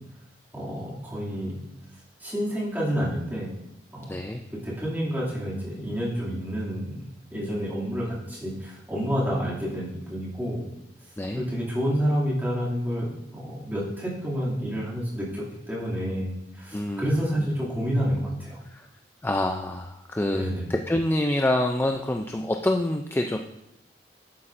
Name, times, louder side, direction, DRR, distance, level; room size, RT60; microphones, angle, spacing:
voice 1, 0.5-1.6 2.2-3.5 3.9-4.1 4.6-10.6 11.3-18.6 20.3-20.6, equal, 10° right, -7 dB, 2.4 m, -29 dB
voice 2, 4.1-4.4 11.2-11.4 16.7-17.5 18.7-18.8 19.2-23.4, left 1 dB, 10° left, 4 dB, 0.3 m, -27 dB
11.0 x 8.5 x 2.5 m, 0.83 s
head